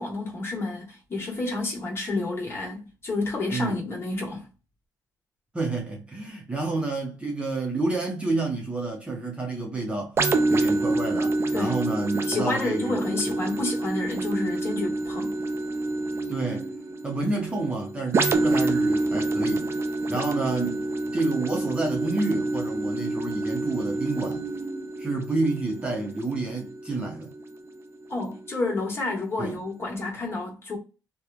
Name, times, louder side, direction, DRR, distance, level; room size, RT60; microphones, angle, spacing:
voice 1, 0.0-4.5 11.5-11.8 12.3-15.4 28.1-30.8, left 2 dB, 35° left, 1.4 m, -30 dB
voice 2, 3.5-3.8 5.5-10.2 10.5-13.0 16.3-16.7 17.0-19.7 20.1-20.8 21.1-24.5 25.0-27.3 29.4-29.6, right 3 dB, 15° right, 0.8 m, -29 dB
sound 1, 10.2-27.7 28.2-28.4, right 2 dB, 35° right, 0.5 m, -27 dB
3.0 x 2.3 x 2.5 m
cardioid pair, 120°, 7 cm